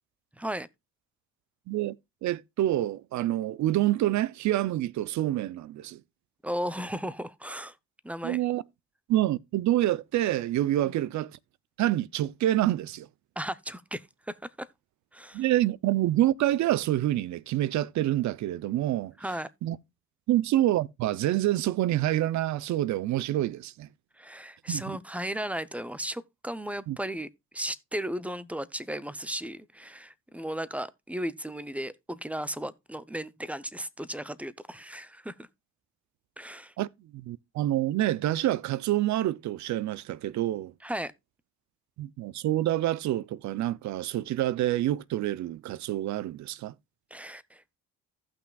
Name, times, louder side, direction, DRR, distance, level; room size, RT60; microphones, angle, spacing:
voice 1, 0.4-0.7 6.4-7.8 8.0-8.4 13.4-14.7 15.1-15.4 19.2-19.5 24.2-27.3 27.5-35.5 36.4-36.7 40.8-41.1 47.1-47.8, right 1 dB, 5° right, 0.5 m, -35 dB
voice 2, 1.7-2.0 2.2-6.0 8.2-8.6 9.1-11.3 11.8-13.1 15.3-19.1 19.6-19.8 20.3-23.9 24.7-25.0 26.9-27.0 36.8-36.9 37.1-40.7 42.0-46.7, right 14 dB, 70° right, 0.5 m, -27 dB
15.0 x 5.9 x 2.3 m
cardioid pair, 90°, 30 cm